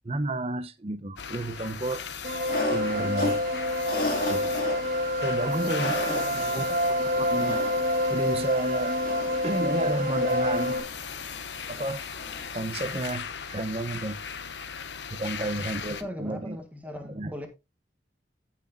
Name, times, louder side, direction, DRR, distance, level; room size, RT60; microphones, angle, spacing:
voice 1, 0.0-2.0 2.7-3.4 4.3-4.5 4.9-5.0 5.2-6.7 7.0-7.6 8.1-9.0 9.4-10.8 11.7-12.0 12.5-14.2 15.1-16.6 17.0-17.3, right 2 dB, 35° right, 0.7 m, -31 dB
sound 1, 1.2-16.0, left 6 dB, 85° left, 0.9 m, -39 dB
sound 2, 2.2-10.8, left 1 dB, 50° right, 1.5 m, -27 dB
sound 3, 2.4-12.7, left 2 dB, 50° left, 3.6 m, -36 dB
voice 2, 5.4-6.9 15.2-17.5, equal, 10° right, 1.4 m, -41 dB
15.5 x 6.0 x 2.6 m
head